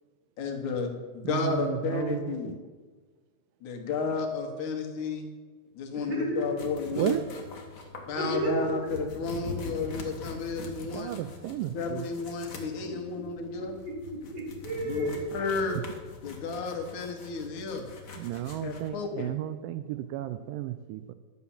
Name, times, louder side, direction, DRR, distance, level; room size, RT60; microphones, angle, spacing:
voice 1, 0.4-2.5 3.6-5.3 5.7-7.2 7.9-11.1 11.7-13.8 14.8-15.8 16.2-17.9 18.6-19.3, left 4 dB, 60° left, 2 dB, 2.7 m, -32 dB
voice 2, 1.2-2.5 7.0-7.3 10.9-12.1 18.2-21.1, right 13 dB, 80° right, 12 dB, 1.9 m, -33 dB
voice 3, 5.9-6.6 8.1-8.9 9.6-9.7 12.8-13.0 13.6-15.2 15.6-15.8, right 1 dB, 30° right, -1 dB, 3.2 m, -33 dB
sound 1, 6.6-18.9, left 3 dB, 80° left, 0.7 m, -44 dB
11.5 x 8.6 x 7.2 m, 1.4 s
omnidirectional pair, 4.2 m